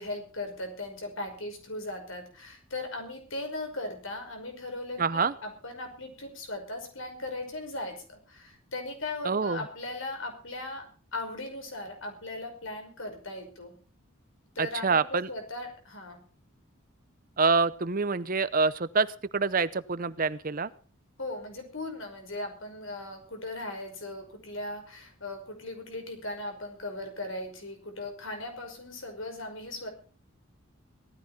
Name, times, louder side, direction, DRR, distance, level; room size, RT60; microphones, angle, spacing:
voice 1, 0.0-13.7 14.6-16.2 21.2-29.9, left 2 dB, 65° left, 4 dB, 5.6 m, -38 dB
voice 2, 5.0-5.3 9.2-9.6 14.6-15.3 17.4-19.1 19.3-20.7, right 4 dB, 40° right, 16 dB, 0.7 m, -26 dB
18.0 x 14.5 x 4.2 m, 0.39 s
head